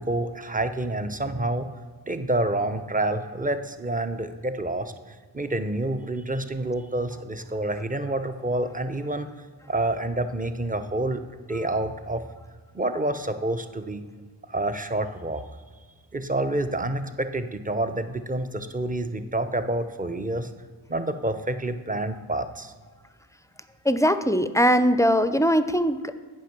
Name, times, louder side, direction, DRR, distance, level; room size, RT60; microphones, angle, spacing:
voice 1, 0.0-1.7 2.1-4.9 5.3-9.3 9.7-11.2 11.5-12.2 12.7-14.0 14.5-15.4 16.1-20.5 20.9-22.7, right 1 dB, 20° right, 9 dB, 0.8 m, -28 dB
voice 2, 23.8-26.1, equal, 5° left, 11 dB, 0.4 m, -21 dB
9.2 x 5.5 x 5.9 m, 1.5 s
cardioid pair, 55°, 46 cm